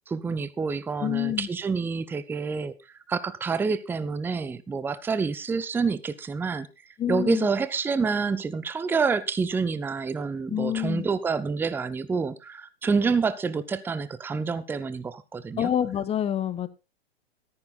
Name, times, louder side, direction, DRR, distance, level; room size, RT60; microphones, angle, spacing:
voice 1, 0.1-2.7 3.1-6.7 7.1-15.7, right 5 dB, 5° right, 0.6 m, -28 dB
voice 2, 1.0-1.5 7.0-7.5 10.5-11.0 15.6-16.7, left 10 dB, 20° left, 1.0 m, -27 dB
14.0 x 9.7 x 4.1 m
figure-of-eight pair, 105°, 32 cm